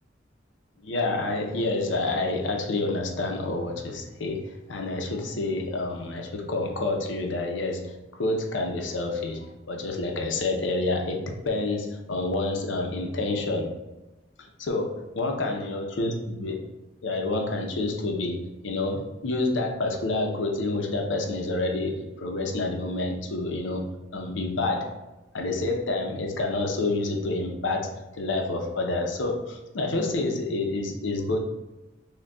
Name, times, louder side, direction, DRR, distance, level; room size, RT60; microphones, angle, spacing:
voice 1, 0.8-7.9 8.2-13.7 14.6-16.6 17.0-23.9 24.1-25.0 25.3-31.4, left 2 dB, 80° left, 2 dB, 0.6 m, -28 dB
6.3 x 2.2 x 2.3 m, 1.1 s
head